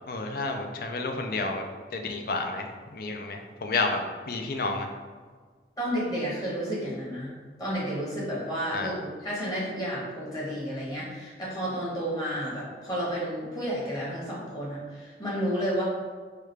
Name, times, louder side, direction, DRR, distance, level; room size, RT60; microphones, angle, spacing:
voice 1, 0.1-1.7 1.9-2.7 2.9-4.0 4.3-4.9 8.7-8.9, left 3 dB, 55° left, 4 dB, 0.4 m, -30 dB
voice 2, 5.8-7.3 7.6-15.8, equal, 20° left, -7 dB, 1.1 m, -31 dB
4.7 x 2.3 x 3.3 m, 1.5 s
head